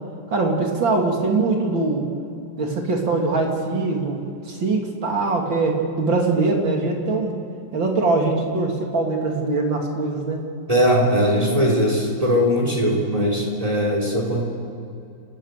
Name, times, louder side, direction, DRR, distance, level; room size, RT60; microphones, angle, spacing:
voice 1, 0.3-2.1 2.6-7.3 7.7-10.4 12.6-13.0, right 3 dB, 85° right, 1 dB, 3.5 m, -22 dB
voice 2, 10.7-14.4, equal, 20° right, -1 dB, 3.6 m, -20 dB
29.5 x 15.0 x 6.6 m, 2.6 s
omnidirectional pair, 2.0 m